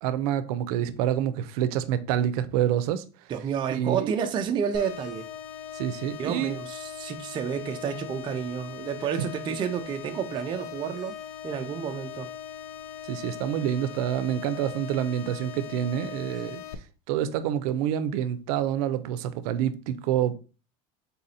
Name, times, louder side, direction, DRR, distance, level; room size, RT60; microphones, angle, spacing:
voice 1, 0.0-3.0 3.7-4.1 5.7-6.6 9.2-9.3 13.0-16.6 17.1-20.3, right 10 dB, 80° right, 0.5 m, -27 dB
voice 2, 3.3-5.3 6.2-11.2 11.4-12.3, right 7 dB, 25° right, 0.4 m, -30 dB
sound 1, 4.7-16.7, left 9 dB, 80° left, 0.5 m, -40 dB
4.1 x 2.6 x 4.1 m
cardioid pair, 155°, 19 cm